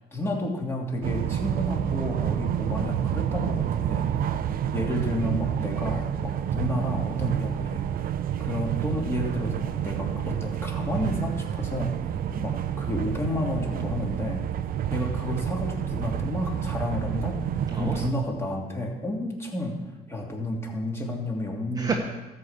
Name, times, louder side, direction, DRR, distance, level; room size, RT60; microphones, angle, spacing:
voice 1, 0.0-4.1 4.7-7.8 8.4-11.9 12.4-14.4 14.9-17.4 17.8-19.8 20.1-22.0, left 1 dB, 15° left, -1 dB, 2.7 m, -31 dB
sound 1, 1.0-18.1, right 9 dB, 60° right, 0.7 m, -29 dB
voice 2, 3.6-4.5 12.1-12.4 17.7-18.0 21.7-22.0, right 4 dB, 20° right, 1 dB, 1.3 m, -33 dB
13.0 x 5.7 x 8.0 m, 1.2 s
cardioid pair, 110°, 17 cm